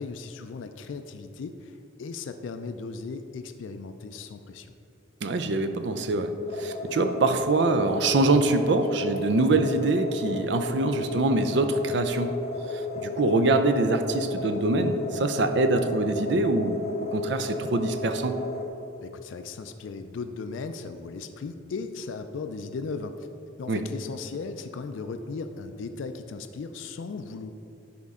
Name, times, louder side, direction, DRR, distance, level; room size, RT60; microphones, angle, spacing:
voice 1, 0.0-4.7 19.0-23.3 23.6-27.5, left 4 dB, 80° left, 8 dB, 0.4 m, -37 dB
voice 2, 5.2-12.3 12.7-18.4 23.7-23.8, right 2 dB, 65° right, 8 dB, 0.5 m, -24 dB
sound 1, 6.5-18.7, left 2 dB, 35° left, 0.6 m, -33 dB
10.5 x 4.3 x 3.6 m, 2.8 s
head